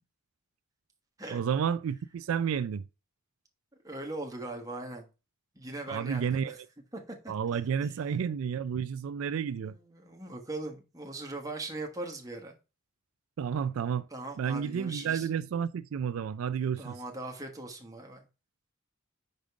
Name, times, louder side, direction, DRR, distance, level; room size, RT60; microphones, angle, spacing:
voice 1, 1.3-2.8 5.9-6.6 7.3-9.8 13.4-14.1 14.4-17.0, right 7 dB, 85° right, 0.3 m, -31 dB
voice 2, 3.8-5.1 5.5-6.6 7.1-7.2 7.8-8.0 9.7-12.6 14.1-15.3 16.8-18.2, right 2 dB, 15° right, 1.3 m, -40 dB
5.4 x 5.1 x 3.6 m
head